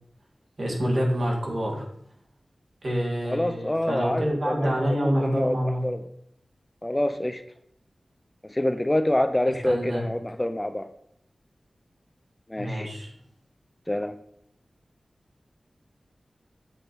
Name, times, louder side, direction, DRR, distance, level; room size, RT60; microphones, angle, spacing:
voice 1, 0.6-1.8 2.8-5.8 9.6-10.1 12.6-13.1, equal, 65° right, -2 dB, 1.7 m, -27 dB
voice 2, 3.2-4.7 5.0-6.0 6.8-7.4 8.4-10.9 12.5-12.9 13.9-14.2, left 1 dB, 20° left, 9 dB, 0.4 m, -26 dB
7.8 x 2.7 x 4.5 m, 0.72 s
wide cardioid pair, 65°, 0 cm